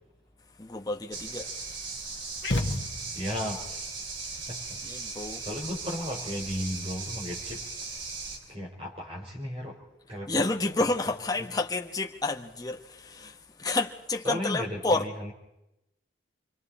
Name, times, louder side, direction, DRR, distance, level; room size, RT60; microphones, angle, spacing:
voice 1, 0.6-1.5 4.8-5.4 10.3-15.1, left 2 dB, 20° left, 1.1 m, -30 dB
sound 1, 1.1-8.4, right 4 dB, 80° right, 4.0 m, -38 dB
sound 2, 2.4-3.5, left 1 dB, 60° left, 1.6 m, -30 dB
voice 2, 3.1-3.9 4.5-4.8 5.4-7.7 8.5-9.8 10.1-10.5 14.2-15.3, left 1 dB, 30° right, 4.6 m, -35 dB
28.5 x 24.0 x 4.3 m
head